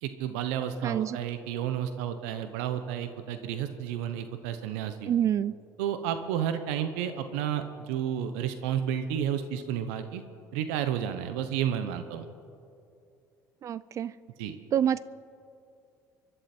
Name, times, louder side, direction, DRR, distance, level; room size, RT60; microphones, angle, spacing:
voice 1, 0.0-5.1 5.8-10.2 10.5-12.3 14.4-14.6, right 9 dB, 90° right, 9 dB, 0.8 m, -31 dB
voice 2, 0.8-1.2 5.1-5.6 13.6-14.1 14.7-15.0, right 9 dB, 45° right, 18 dB, 0.3 m, -27 dB
24.0 x 11.5 x 4.4 m, 2.5 s
supercardioid pair, 90°, 7 cm